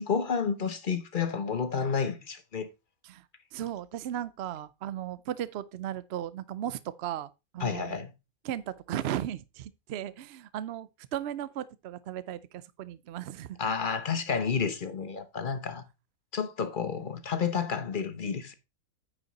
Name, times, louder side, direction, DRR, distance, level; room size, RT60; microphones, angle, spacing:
voice 1, 0.0-2.7 7.6-8.1 13.6-15.8 16.3-18.5, left 6 dB, 40° left, 1.0 m, -30 dB
voice 2, 3.5-8.0 8.4-13.6, right 11 dB, 65° right, 0.7 m, -36 dB
9.7 x 5.3 x 4.0 m
omnidirectional pair, 1.5 m